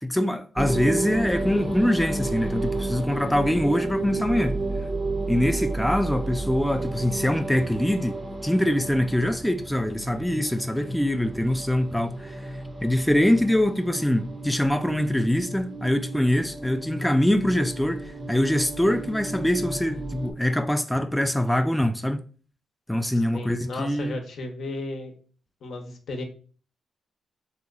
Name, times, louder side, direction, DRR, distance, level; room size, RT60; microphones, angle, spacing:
voice 1, 0.0-4.6 5.3-8.2 8.4-22.3 22.9-24.2, left 1 dB, 5° left, 0.3 m, -24 dB
sound 1, 0.6-20.3, right 2 dB, 30° right, 0.7 m, -32 dB
voice 2, 23.3-25.1 25.6-26.2, left 2 dB, 75° left, 0.7 m, -34 dB
2.9 x 2.2 x 3.6 m
supercardioid pair, 55°, 0 cm